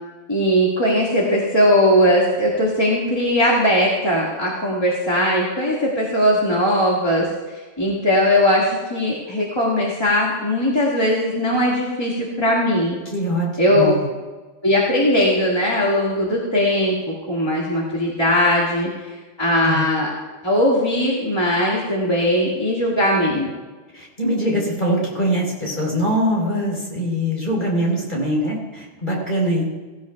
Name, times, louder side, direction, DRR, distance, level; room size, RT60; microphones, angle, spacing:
voice 1, 0.3-13.0 13.6-14.0 14.6-20.1 20.4-23.5, equal, 20° left, -5 dB, 2.0 m, -19 dB
voice 2, 13.1-14.0 19.6-19.9 23.9-29.6, equal, 40° left, -3 dB, 4.0 m, -22 dB
17.0 x 15.5 x 2.3 m, 1.3 s
omnidirectional pair, 1.2 m